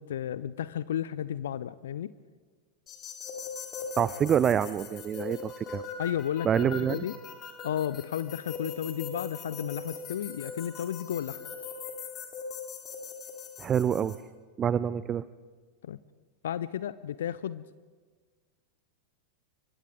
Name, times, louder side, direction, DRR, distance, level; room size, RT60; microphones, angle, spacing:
voice 1, 0.0-2.1 6.0-6.5 6.8-7.1 7.6-11.4 15.8-16.0 16.4-17.6, left 10 dB, 60° left, 17 dB, 0.5 m, -33 dB
sound 1, 2.9-14.1, left 5 dB, 30° left, 4.0 m, -41 dB
voice 2, 4.0-5.9 6.4-7.0 13.6-14.2 14.6-15.2, right 8 dB, 25° right, 17 dB, 0.5 m, -26 dB
29.5 x 24.0 x 3.9 m, 1.5 s
figure-of-eight pair, 90°, 0 cm